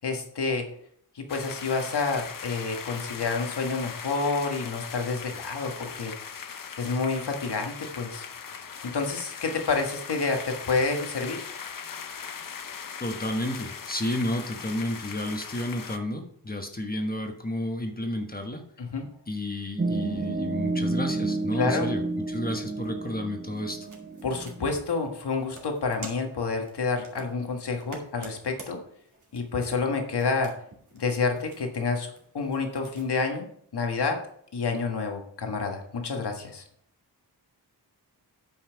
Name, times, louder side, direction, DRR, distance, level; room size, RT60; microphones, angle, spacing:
voice 1, 0.0-0.6 1.1-6.1 6.8-8.2 8.8-11.4 18.8-19.1 21.6-21.9 24.2-28.8 29.3-30.5 30.9-34.2 34.5-36.6, left 4 dB, 70° left, 3 dB, 1.6 m, -29 dB
sound 1, 1.3-16.0, left 6 dB, 50° left, 0.8 m, -39 dB
voice 2, 13.0-18.6 19.3-22.0 22.3-23.8, left 1 dB, 20° left, 4 dB, 1.3 m, -31 dB
sound 2, 19.8-24.8, right 2 dB, 25° right, 0.7 m, -30 dB
sound 3, 23.5-33.1, right 2 dB, 45° right, 2.5 m, -49 dB
9.6 x 5.7 x 4.7 m, 0.64 s
wide cardioid pair, 130°, 41 cm